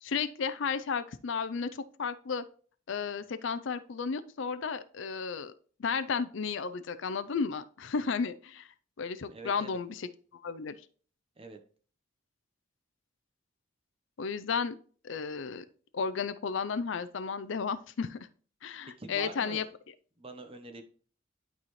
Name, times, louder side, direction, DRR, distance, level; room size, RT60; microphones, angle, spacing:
voice 1, 0.0-2.4 2.9-5.5 5.8-8.7 9.0-10.1 10.4-10.8 14.2-14.8 15.0-15.6 15.9-18.2 18.6-19.6, left 5 dB, 65° left, 12 dB, 0.5 m, -33 dB
voice 2, 9.3-9.8 11.4-11.6 19.0-19.7 20.2-20.9, right 2 dB, 25° right, 6 dB, 0.9 m, -44 dB
11.5 x 4.2 x 3.1 m, 0.43 s
head